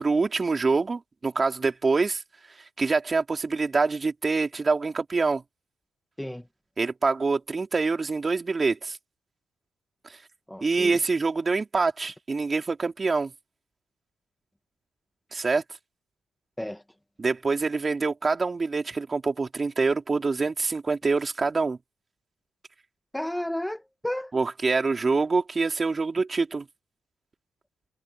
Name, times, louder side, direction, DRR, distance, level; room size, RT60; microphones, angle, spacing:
voice 1, 0.0-2.2 2.8-5.4 6.8-9.0 10.1-10.2 10.6-13.3 15.3-15.6 17.2-21.8 24.3-26.7, right 4 dB, 30° right, 3.7 m, -25 dB
voice 2, 10.5-11.0 16.6-16.8 23.1-24.3, left 1 dB, 5° left, 1.3 m, -32 dB
cardioid pair, 90°, 0 cm